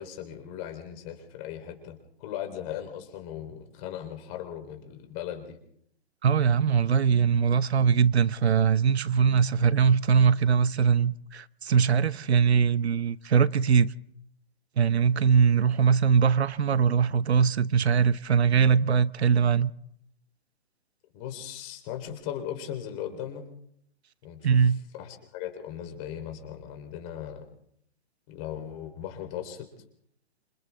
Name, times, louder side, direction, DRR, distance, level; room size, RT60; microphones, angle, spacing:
voice 1, 0.0-5.6 21.1-23.5 24.2-24.4 24.9-27.4 28.3-29.7, left 10 dB, 30° left, 3.9 m, -38 dB
voice 2, 6.2-13.9 14.8-19.7 24.4-24.8, right 6 dB, 80° right, 0.9 m, -22 dB
27.5 x 27.0 x 3.6 m
hypercardioid pair, 145°, 32 cm